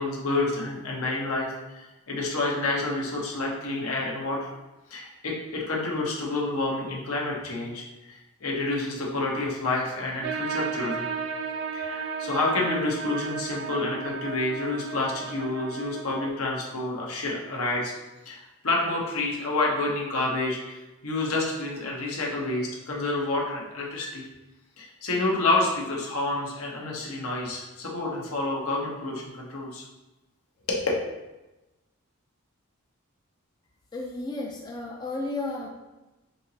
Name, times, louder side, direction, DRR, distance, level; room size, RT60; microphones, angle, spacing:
voice 1, 0.0-4.5 4.9-11.1 11.7-17.9 18.2-24.2 24.8-29.8 30.7-30.9, left 2 dB, 75° left, -2 dB, 0.9 m, -29 dB
sound 1, 10.2-16.3, right 6 dB, 50° right, 0.4 m, -34 dB
voice 2, 33.9-35.7, left 2 dB, 20° left, -1 dB, 0.3 m, -33 dB
5.2 x 2.8 x 2.8 m, 1.1 s
head